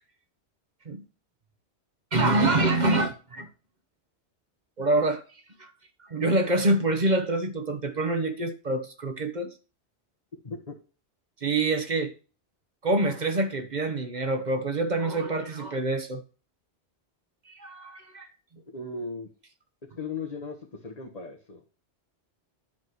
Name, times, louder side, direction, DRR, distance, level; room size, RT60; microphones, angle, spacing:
voice 1, 2.1-3.5 4.8-5.2 5.6-5.7 6.0-9.5 11.4-12.1 12.8-16.2 17.5-18.3, right 2 dB, 45° right, 1.1 m, -26 dB
voice 2, 10.4-10.8 18.6-19.3 20.0-21.6, left 4 dB, 35° left, 1.7 m, -37 dB
10.5 x 3.8 x 6.4 m
omnidirectional pair, 1.1 m